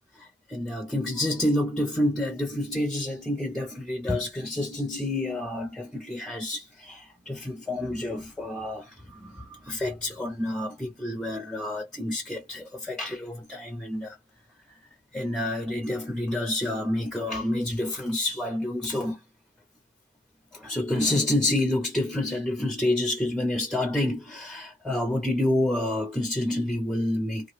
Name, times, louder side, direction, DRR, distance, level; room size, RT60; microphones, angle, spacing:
voice 1, 0.2-14.2 15.1-19.2 20.5-27.5, left 1 dB, ahead, 0.4 m, -28 dB
2.8 x 2.3 x 3.1 m
head